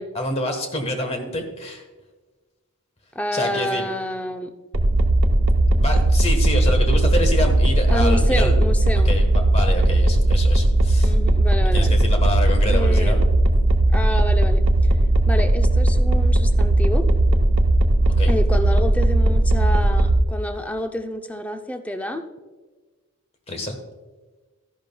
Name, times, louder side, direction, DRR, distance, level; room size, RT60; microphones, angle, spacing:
voice 1, 0.1-1.8 3.3-3.9 5.7-8.5 9.0-11.1 11.6-13.2 18.2-18.3 23.5-23.8, left 1 dB, 30° left, 5 dB, 1.3 m, -27 dB
voice 2, 3.1-4.5 7.9-9.1 11.0-12.0 12.7-13.3 13.9-14.6 15.3-17.0 18.3-22.2, left 1 dB, 5° left, 6 dB, 0.5 m, -28 dB
sound 1, 4.7-20.2, right 1 dB, 75° right, 0.8 m, -17 dB
13.0 x 10.5 x 2.3 m, 1.3 s
head